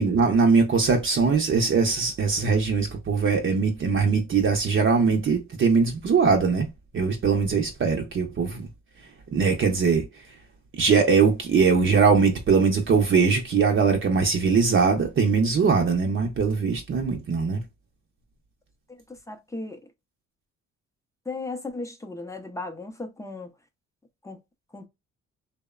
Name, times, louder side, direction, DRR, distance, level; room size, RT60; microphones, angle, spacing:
voice 1, 0.0-6.7 6.9-8.7 9.3-10.1 10.8-17.6, right 5 dB, 40° right, 0.6 m, -21 dB
voice 2, 19.3-19.8 21.3-23.5 24.2-24.4 24.7-24.9, left 3 dB, 10° left, 0.5 m, -35 dB
2.8 x 2.1 x 2.2 m
cardioid pair, 90°, 30 cm